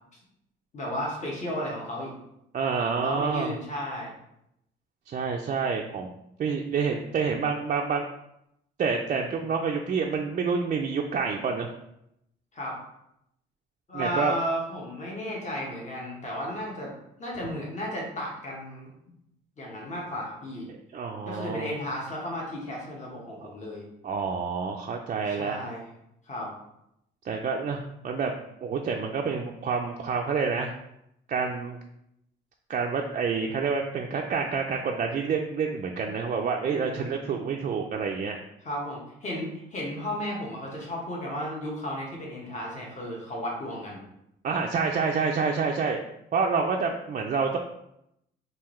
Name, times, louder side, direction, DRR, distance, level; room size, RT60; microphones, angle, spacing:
voice 1, 0.7-2.1 3.0-4.1 12.5-12.8 13.9-16.9 17.2-19.1 19.6-20.7 21.2-23.8 25.3-25.8 26.3-26.5 36.6-37.1 38.6-44.0, equal, 35° left, -3 dB, 1.2 m, -34 dB
voice 2, 2.5-3.5 5.1-6.1 6.4-8.1 8.8-11.7 13.9-14.3 20.9-21.7 24.0-25.7 27.3-28.3 28.6-30.7 31.3-31.8 32.7-38.4 44.4-46.0 46.3-47.6, right 5 dB, 40° right, 1 dB, 0.4 m, -28 dB
3.5 x 2.6 x 3.1 m, 0.80 s
cardioid pair, 90°, 20 cm